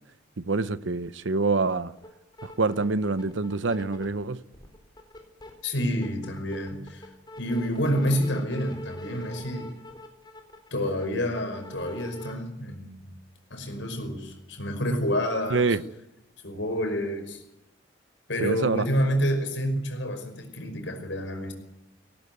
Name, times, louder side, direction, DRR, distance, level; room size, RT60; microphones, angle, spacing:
voice 1, 0.4-1.9 2.4-4.4 15.5-15.8 18.4-18.9, right 3 dB, 80° right, 0.8 m, -26 dB
sound 1, 2.0-2.1 2.3-4.2 4.5-5.5 5.9-12.3, equal, 25° left, 4.2 m, -43 dB
voice 2, 5.6-7.1 7.4-9.7 10.7-13.1 13.5-15.8 16.4-17.4 18.3-21.5, equal, 75° left, 5.4 m, -28 dB
19.0 x 18.0 x 9.5 m
head